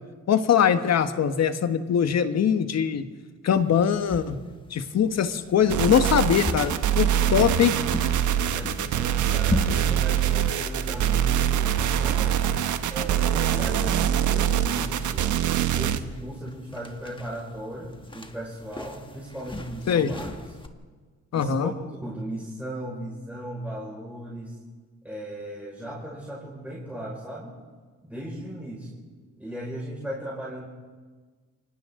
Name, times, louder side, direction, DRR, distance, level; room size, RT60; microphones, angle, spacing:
voice 1, 0.3-3.1 3.4-4.4 4.7-7.7 19.9-20.1 21.3-21.7, left 8 dB, 60° left, 9 dB, 1.5 m, -22 dB
sound 1, 3.5-20.7, left 2 dB, 15° left, 1.7 m, -38 dB
sound 2, 5.7-16.0, right 10 dB, 75° right, 1.1 m, -24 dB
voice 2, 8.3-12.4 12.9-15.3 15.7-20.6 21.3-21.7 22.0-24.6 25.0-27.6 28.0-29.0 29.4-30.7, right 1 dB, 5° right, -5 dB, 5.6 m, -37 dB
29.0 x 24.5 x 3.9 m, 1.4 s
cardioid pair, 90°, 30 cm